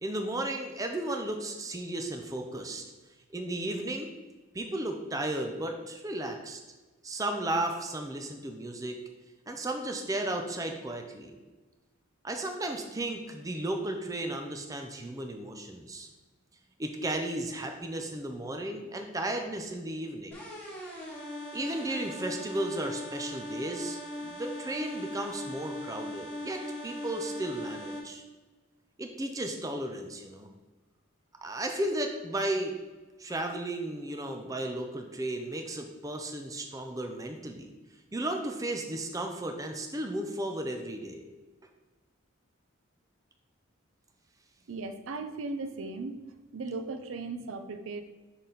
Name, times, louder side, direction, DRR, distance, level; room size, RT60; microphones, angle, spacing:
voice 1, 0.0-2.8 3.3-4.1 4.5-6.6 7.0-9.0 9.5-11.3 12.2-16.1 16.8-20.4 21.5-28.2 29.0-30.5 31.4-32.7 33.2-37.7 38.1-41.2, right 1 dB, 15° right, 4 dB, 0.4 m, -34 dB
sound 1, 20.3-28.0, left 1 dB, 10° left, 1.6 m, -39 dB
voice 2, 44.7-46.2 46.5-48.0, right 3 dB, 75° right, 8 dB, 0.5 m, -37 dB
6.3 x 4.0 x 3.8 m, 1.2 s
head